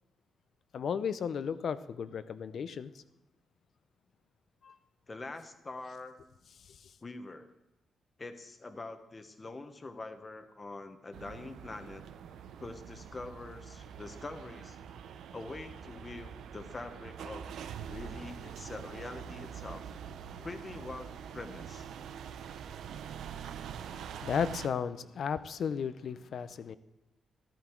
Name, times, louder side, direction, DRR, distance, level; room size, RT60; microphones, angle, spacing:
voice 1, 0.7-2.9 4.6-4.7 23.8-26.8, left 7 dB, 55° left, 0.6 m, -34 dB
voice 2, 5.1-6.2 7.0-7.5 8.2-12.0 12.6-14.8 15.3-17.6 17.9-19.9 20.4-21.9, left 3 dB, 25° left, 1.1 m, -44 dB
sound 1, 11.1-24.7, right 8 dB, 85° right, 0.7 m, -45 dB
13.0 x 13.0 x 4.6 m
cardioid pair, 145°, 0 cm